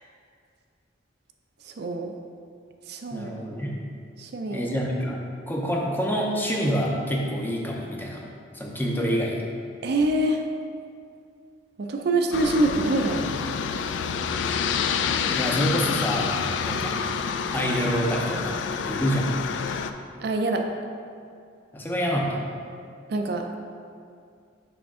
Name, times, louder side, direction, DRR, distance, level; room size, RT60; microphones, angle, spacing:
voice 1, 1.6-2.1 2.9-3.3 4.2-4.7 9.8-10.4 11.8-13.4 20.2-20.6 23.1-23.5, right 2 dB, 55° right, 3 dB, 0.4 m, -25 dB
voice 2, 3.1-3.8 4.5-5.2 5.5-8.3 8.5-9.4 15.3-17.0 17.5-19.3 21.7-22.4, equal, 10° left, -1 dB, 0.6 m, -27 dB
Aircraft, 12.3-19.9, left 6 dB, 75° left, 0.3 m, -28 dB
5.9 x 5.1 x 3.6 m, 2.3 s
head